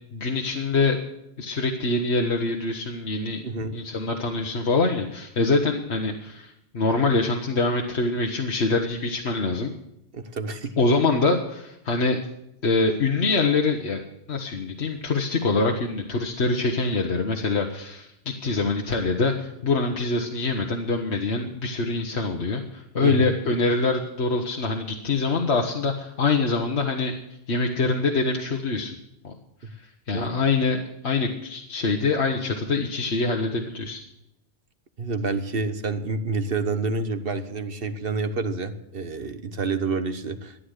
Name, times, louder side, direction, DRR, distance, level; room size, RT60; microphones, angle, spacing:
voice 1, 0.1-1.0 1.4-3.4 3.7-9.7 10.8-12.2 12.6-14.0 14.3-27.2 27.5-29.0 29.2-29.3 30.1-34.0, left 3 dB, 70° left, 2 dB, 1.6 m, -24 dB
voice 2, 3.4-3.7 10.1-10.7 23.0-23.3 30.1-30.3 35.0-40.6, right 4 dB, 55° right, 10 dB, 1.4 m, -28 dB
14.0 x 9.8 x 8.2 m, 0.83 s
omnidirectional pair, 1.2 m